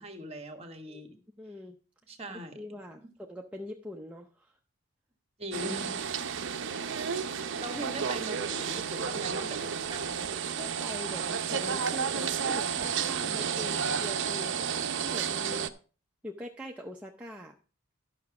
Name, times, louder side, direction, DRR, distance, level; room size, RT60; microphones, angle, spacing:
voice 1, 0.0-1.2 2.1-2.6 5.4-6.7 7.6-10.2, right 1 dB, 25° right, 7 dB, 1.3 m, -40 dB
voice 2, 1.4-1.8 2.3-4.6 10.6-15.8 16.2-17.5, left 1 dB, 5° right, 0 dB, 0.6 m, -43 dB
sound 1, 5.5-15.7, right 7 dB, 55° right, 0.6 m, -32 dB
12.0 x 5.9 x 4.7 m, 0.36 s
head